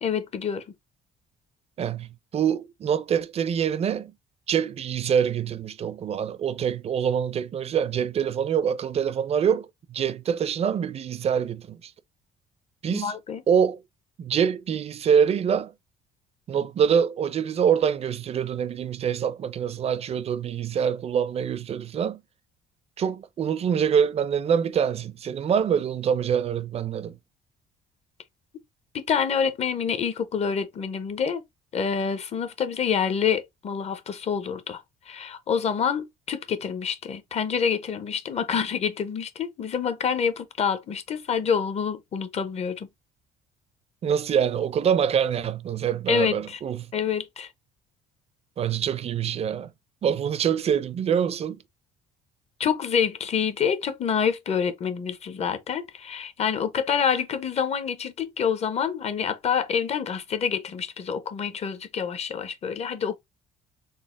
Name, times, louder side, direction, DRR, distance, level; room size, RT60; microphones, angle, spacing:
voice 1, 0.0-0.7 12.9-13.4 28.9-31.4 31.7-42.9 46.1-46.6 46.9-47.5 52.6-63.2, left 7 dB, 40° left, 0.7 m, -27 dB
voice 2, 1.8-4.1 4.5-11.9 12.8-13.1 13.5-13.8 14.2-15.7 16.5-22.2 23.0-27.2 44.0-46.9 48.6-49.7 50.0-51.6, right 8 dB, 40° right, 0.5 m, -25 dB
4.0 x 2.1 x 3.6 m
cardioid pair, 110°, 17 cm